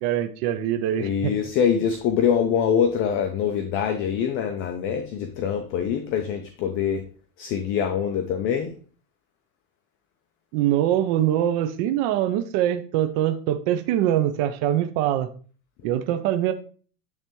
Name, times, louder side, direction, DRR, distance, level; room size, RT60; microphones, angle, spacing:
voice 1, 0.0-1.3 10.5-15.3 15.8-16.5, right 11 dB, 40° right, 9 dB, 0.4 m, -23 dB
voice 2, 1.0-7.0 7.4-8.7, left 8 dB, 30° left, 6 dB, 0.5 m, -24 dB
9.7 x 3.3 x 3.0 m, 0.42 s
supercardioid pair, 140°, 44 cm